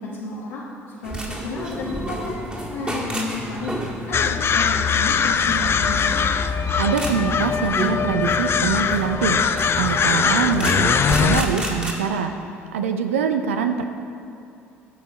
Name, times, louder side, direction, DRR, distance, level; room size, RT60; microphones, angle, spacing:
voice 1, 0.0-2.3 2.7-3.8 4.1-6.2, left 3 dB, 70° left, -6 dB, 1.1 m, -31 dB
sound 1, 1.0-11.9, right 1 dB, 15° right, 1.9 m, -32 dB
sound 2, 4.1-11.4, left 6 dB, 35° left, 0.4 m, -21 dB
voice 2, 6.8-9.4 9.8-12.4 12.7-13.8, right 6 dB, 80° right, 7 dB, 0.5 m, -24 dB
15.5 x 5.5 x 4.1 m, 2.6 s
figure-of-eight pair, 55°, 7 cm